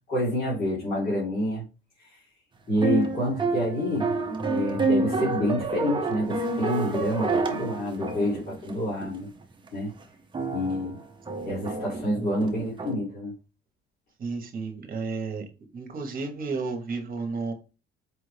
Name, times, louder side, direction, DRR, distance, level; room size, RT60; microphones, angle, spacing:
voice 1, 0.1-1.6 2.0-2.2 2.7-4.1 4.5-9.3 9.7-9.9 10.5-11.0 11.4-13.3, equal, 45° left, -8 dB, 2.2 m, -28 dB
sound 1, 2.8-9.2 9.7-9.8 10.3-12.9, right 3 dB, 20° right, 0.7 m, -28 dB
voice 2, 14.2-15.5 15.7-17.5, right 4 dB, 45° right, 5 dB, 1.2 m, -32 dB
4.8 x 2.5 x 3.3 m, 0.32 s
cardioid pair, 115°, 21 cm